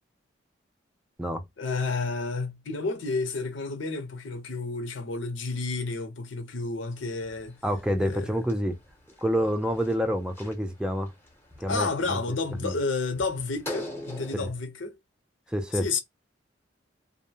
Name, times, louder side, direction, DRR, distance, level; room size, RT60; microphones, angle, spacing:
voice 1, 1.6-7.6 8.0-8.4 11.7-15.0 15.8-16.0, left 3 dB, 85° left, 0.7 m, -31 dB
sound 1, 6.9-14.4, left 1 dB, 10° left, 0.7 m, -43 dB
voice 2, 7.6-8.8 9.2-11.1 11.6-12.2 12.6-12.8 14.3-14.5 15.5-15.9, equal, 5° right, 0.4 m, -28 dB
2.6 x 2.1 x 2.7 m
head